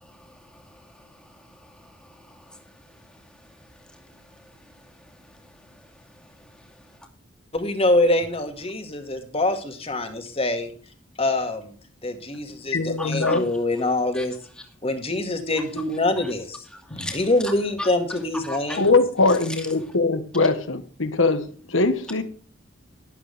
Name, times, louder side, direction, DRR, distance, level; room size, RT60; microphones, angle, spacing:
voice 1, 0.0-5.9 13.0-13.4 14.1-14.3 14.6-14.7 15.6-15.7 16.2-16.3 16.7-17.5 17.8-17.9 18.4-18.9 19.3-19.7, left 1 dB, 5° left, 2.4 m, -40 dB
voice 2, 7.5-10.7 11.2-11.7 12.0-14.3 14.8-16.6 16.9-18.9, left 2 dB, 30° left, 2.2 m, -24 dB
voice 3, 12.7-13.4 18.8-22.2, left 3 dB, 75° left, 1.5 m, -21 dB
12.5 x 11.5 x 3.5 m
head